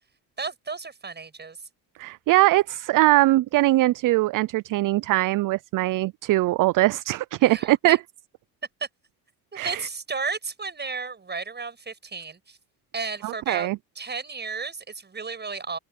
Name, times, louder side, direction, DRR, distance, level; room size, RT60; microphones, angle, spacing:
voice 1, 0.4-1.6 7.5-8.0 9.6-12.6 12.9-13.7 14.0-15.8, right 4 dB, 25° right, 6.8 m, -33 dB
voice 2, 2.0-8.0 9.5-9.9 13.2-13.8, right 17 dB, 55° right, 0.5 m, -21 dB
open air
cardioid pair, 105°, 39 cm